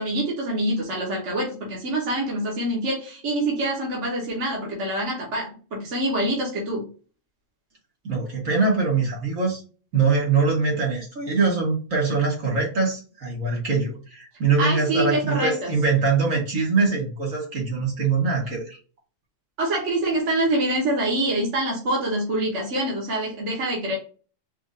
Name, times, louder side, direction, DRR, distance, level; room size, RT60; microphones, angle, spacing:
voice 1, 0.0-6.9 14.6-15.7 19.6-24.0, right 1 dB, 65° right, -3 dB, 1.5 m, -25 dB
voice 2, 8.0-9.6 9.9-18.8, right 4 dB, 80° right, -2 dB, 1.9 m, -23 dB
4.6 x 2.5 x 2.6 m, 0.37 s
omnidirectional pair, 1.4 m